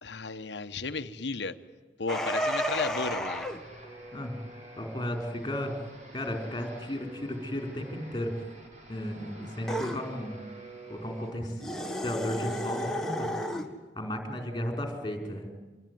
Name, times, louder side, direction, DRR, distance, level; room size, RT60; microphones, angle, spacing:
voice 1, 0.0-1.6 2.0-3.5, left 3 dB, 70° left, 10 dB, 1.1 m, -34 dB
sound 1, 2.1-3.6 9.7-10.0 11.6-13.7, equal, 5° left, 1.6 m, -32 dB
sound 2, 2.6-11.3, right 1 dB, 45° right, 5.6 m, -49 dB
voice 2, 4.8-5.7 6.1-8.3 8.9-10.4 10.9-11.6 12.0-13.3 13.9-15.5, left 1 dB, 25° left, 4 dB, 4.9 m, -34 dB
26.0 x 21.5 x 9.4 m, 1.2 s
head